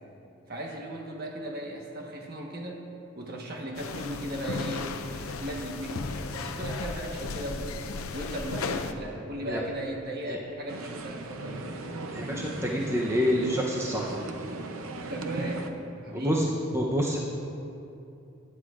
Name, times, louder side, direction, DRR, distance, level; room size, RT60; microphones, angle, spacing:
voice 1, 0.5-2.8 3.1-7.8 8.1-11.8 15.1-16.5, right 1 dB, 45° right, 0 dB, 1.3 m, -37 dB
sound 1, 3.8-8.9, left 3 dB, 85° left, 0.6 m, -35 dB
sound 2, 10.7-15.7, right 2 dB, 85° right, 0.7 m, -37 dB
voice 2, 12.1-14.3 16.1-17.2, equal, 15° right, -3 dB, 0.7 m, -27 dB
16.0 x 9.9 x 2.5 m, 2.7 s
head